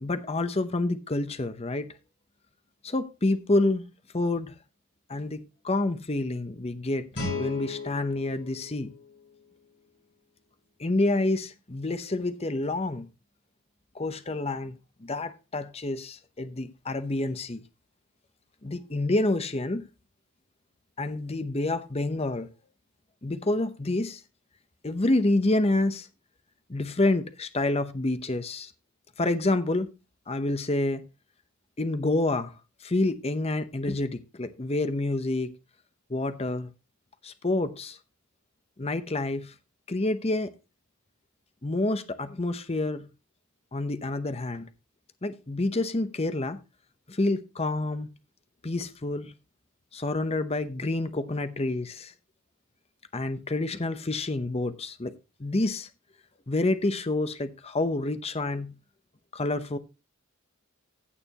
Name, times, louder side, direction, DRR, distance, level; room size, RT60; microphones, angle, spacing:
voice 1, 0.0-1.9 2.8-3.8 4.1-4.5 5.1-8.9 10.8-13.1 13.9-17.6 18.6-19.9 21.0-22.5 23.2-24.2 24.8-26.1 26.7-28.7 29.2-29.9 30.3-31.1 31.8-32.5 32.8-35.5 36.1-36.7 37.2-38.0 38.8-39.5 39.9-40.5 41.6-43.1 43.7-44.7 45.2-46.6 47.1-48.1 48.6-49.3 49.9-52.1 53.1-55.1 55.4-55.9 56.5-58.7 59.3-59.8, left 2 dB, 25° left, 0.8 m, -28 dB
Guitar, 7.1-9.9, left 3 dB, 50° left, 5.5 m, -36 dB
16.0 x 6.8 x 2.9 m
head